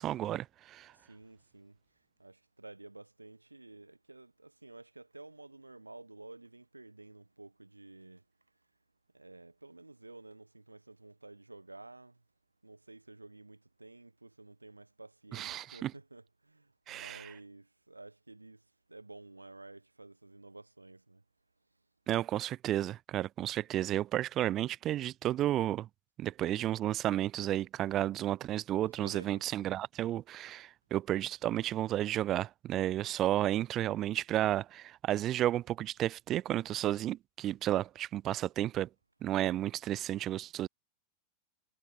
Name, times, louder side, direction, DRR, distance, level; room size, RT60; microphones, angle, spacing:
voice 1, 0.0-0.9 15.3-15.9 16.9-17.3 22.1-25.9 26.2-38.9 39.2-40.7, right 13 dB, 30° right, 0.6 m, -32 dB
voice 2, 0.9-8.2 9.1-12.2 12.6-21.2 28.9-29.4, right 2 dB, 85° right, 4.8 m, -52 dB
figure-of-eight pair, 90°, 0 cm